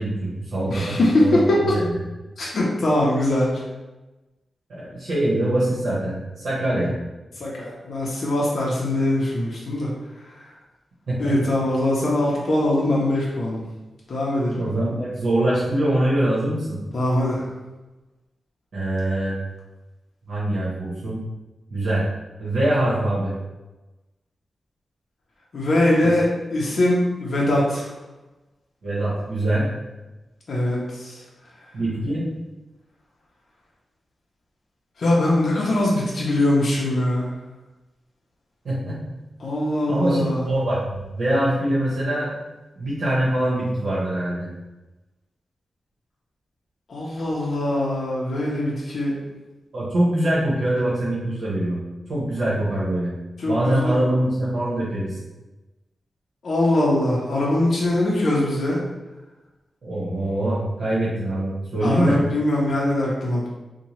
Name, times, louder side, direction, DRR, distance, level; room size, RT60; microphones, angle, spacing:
voice 1, 0.0-2.0 4.7-6.9 11.1-11.4 14.6-16.8 18.7-19.4 20.3-21.2 21.7-22.1 22.4-23.3 28.8-29.7 31.7-32.3 38.6-39.0 39.9-42.3 42.8-44.5 49.7-51.8 52.1-53.1 53.4-55.2 59.8-62.2, right 1 dB, 75° right, -8 dB, 1.0 m, -23 dB
voice 2, 0.7-1.4 1.7-1.8 2.4-3.5 7.4-9.9 11.2-13.6 14.1-14.6 16.9-17.5 25.5-27.9 29.5-29.6 30.5-31.2 35.0-37.3 39.4-40.5 46.9-49.2 53.4-54.0 56.4-58.8 61.8-63.5, left 1 dB, 55° left, -5 dB, 0.5 m, -22 dB
2.7 x 2.1 x 3.0 m, 1.1 s
wide cardioid pair, 160°, 0 cm